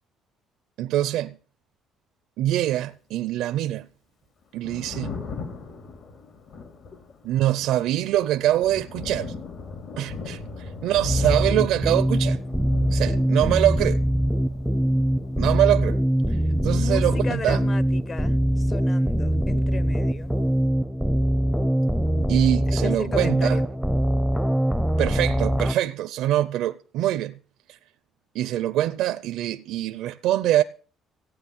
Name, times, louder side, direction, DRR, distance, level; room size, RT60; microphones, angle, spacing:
voice 1, 0.8-1.3 2.4-3.9 4.5-5.1 7.2-9.3 10.0-12.4 12.9-14.0 15.4-16.0 16.3-17.6 22.3-23.6 25.0-27.3 27.7-27.8 28.3-30.6, right 13 dB, 80° right, 0.6 m, -24 dB
Thunder, 4.4-18.9 19.1-20.4, left 4 dB, 60° left, 3.7 m, -39 dB
sound 1, 11.1-25.7, equal, ahead, 0.6 m, -23 dB
voice 2, 16.7-20.4 22.7-23.7, left 5 dB, 35° left, 1.0 m, -35 dB
15.5 x 9.0 x 7.0 m
cardioid pair, 95°, 0 cm